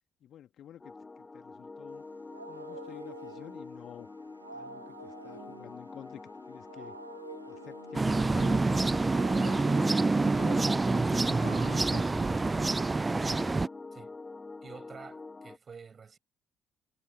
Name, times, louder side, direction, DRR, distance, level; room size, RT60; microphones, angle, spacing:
voice 1, 0.2-2.1 2.5-4.1 4.5-7.0 7.5-9.9 10.2-12.1 12.5-13.5, left 10 dB, 55° left, 2.2 m, -48 dB
sound 1, 0.8-15.6, left 3 dB, 25° left, 2.6 m, -46 dB
Wild animals, 1.9-13.1, right 3 dB, 85° right, 1.2 m, -51 dB
sound 2, 7.9-13.7, right 3 dB, 20° right, 0.4 m, -27 dB
voice 2, 14.6-16.2, right 6 dB, 40° right, 7.4 m, -49 dB
figure-of-eight pair, 45°, 0 cm